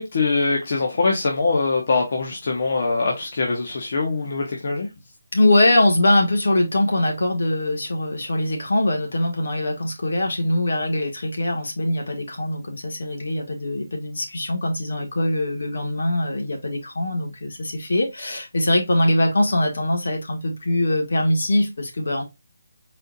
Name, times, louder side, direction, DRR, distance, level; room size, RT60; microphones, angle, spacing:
voice 1, 0.0-4.9, left 3 dB, 40° left, 0.8 m, -23 dB
voice 2, 5.3-22.2, left 1 dB, 65° left, 1.5 m, -22 dB
4.2 x 2.5 x 3.8 m
hypercardioid pair, 175°, 0 cm